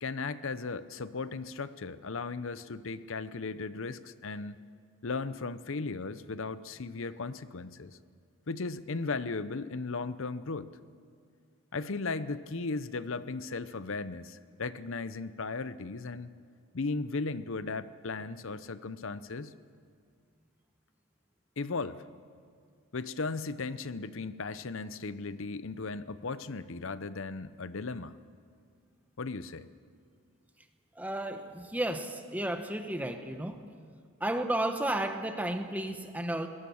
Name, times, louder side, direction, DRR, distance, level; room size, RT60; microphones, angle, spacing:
voice 1, 0.0-4.6 5.0-8.0 8.5-10.8 11.7-16.3 16.7-19.5 21.6-22.1 22.9-28.1 29.2-29.7, left 3 dB, 60° left, 14 dB, 0.7 m, -36 dB
voice 2, 31.0-33.6 34.2-36.5, right 1 dB, 5° right, 6 dB, 1.0 m, -33 dB
21.0 x 18.0 x 7.1 m, 2.1 s
head